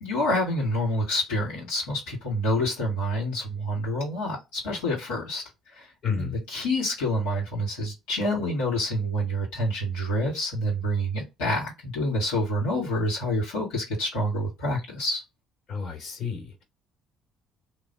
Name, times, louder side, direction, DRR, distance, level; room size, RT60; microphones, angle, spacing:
voice 1, 0.0-5.4 5.7-5.9 6.1-15.2, equal, 85° left, 1.8 m, -27 dB
voice 2, 6.0-6.4 15.7-16.6, left 5 dB, 55° left, 1.9 m, -31 dB
3.0 x 2.0 x 3.9 m
hypercardioid pair, 65°, 0 cm